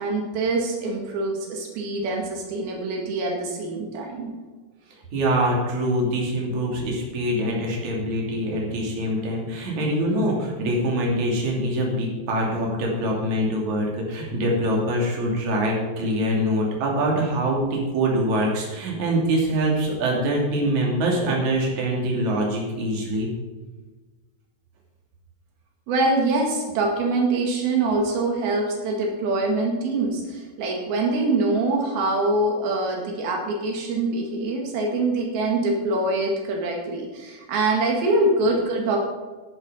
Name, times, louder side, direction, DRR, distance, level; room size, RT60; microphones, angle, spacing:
voice 1, 0.0-4.3 25.9-39.0, right 2 dB, 90° right, 0 dB, 3.9 m, -24 dB
voice 2, 5.1-23.3, right 1 dB, 55° right, -2 dB, 4.1 m, -24 dB
12.5 x 11.0 x 5.2 m, 1.3 s
omnidirectional pair, 4.2 m